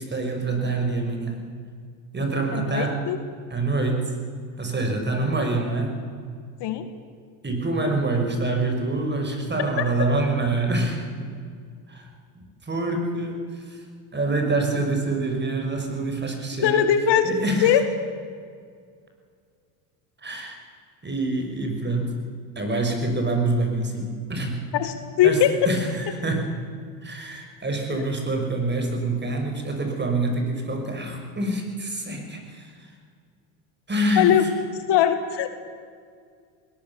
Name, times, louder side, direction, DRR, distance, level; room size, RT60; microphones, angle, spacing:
voice 1, 0.0-1.4 2.1-3.0 3.5-4.2 4.6-6.0 7.4-11.3 11.9-12.1 12.3-13.8 14.1-16.8 17.2-17.8 20.2-20.6 21.0-22.2 22.6-24.6 25.2-26.5 27.0-32.9 33.9-34.3, right 2 dB, 20° right, 4 dB, 5.7 m, -26 dB
voice 2, 2.5-3.2 6.6-6.9 16.6-17.3 17.6-17.8 24.7-25.7 34.2-34.4 34.9-35.5, left 10 dB, 55° left, 9 dB, 1.9 m, -20 dB
21.0 x 19.0 x 7.1 m, 2.1 s
supercardioid pair, 90°, 49 cm